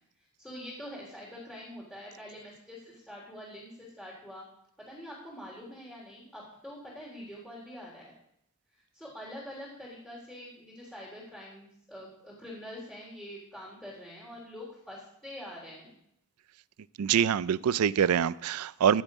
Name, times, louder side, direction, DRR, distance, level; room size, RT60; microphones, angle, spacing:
voice 1, 0.4-4.4 4.8-8.1 8.7-15.9, equal, 5° left, -7 dB, 3.4 m, -45 dB
voice 2, 17.0-19.0, right 8 dB, 80° right, 19 dB, 0.4 m, -25 dB
16.5 x 7.2 x 5.0 m, 0.73 s
head